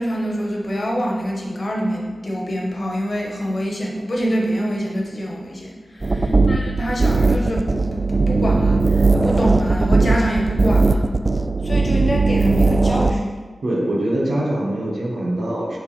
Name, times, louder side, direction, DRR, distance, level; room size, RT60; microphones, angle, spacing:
voice 1, 0.0-11.1 11.6-13.4, equal, 55° left, -2 dB, 1.3 m, -25 dB
sound 1, 6.0-13.1, right 3 dB, 35° right, 0.3 m, -18 dB
voice 2, 6.2-6.7 13.6-15.8, right 1 dB, 80° right, -4 dB, 1.2 m, -23 dB
5.8 x 3.9 x 4.2 m, 1.4 s
cardioid pair, 50°, 0 cm